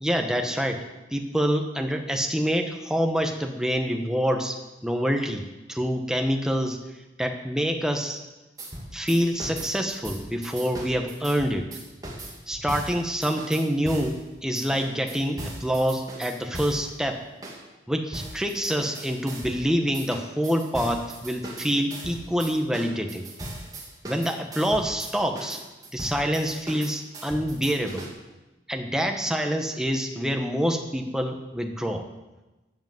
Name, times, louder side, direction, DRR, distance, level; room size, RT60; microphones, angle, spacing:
voice 1, 0.0-0.8 1.1-4.6 4.8-6.8 7.2-8.2 8.9-11.7 12.5-17.2 17.9-23.3 24.1-25.6 25.9-28.0 28.7-32.0, equal, 5° right, 4 dB, 1.2 m, -26 dB
sound 1, 8.6-14.2 14.6-16.9 17.4-17.6 18.1-19.6 19.9-28.1, right 1 dB, 20° right, 2.4 m, -38 dB
13.0 x 8.2 x 7.8 m, 1.1 s
head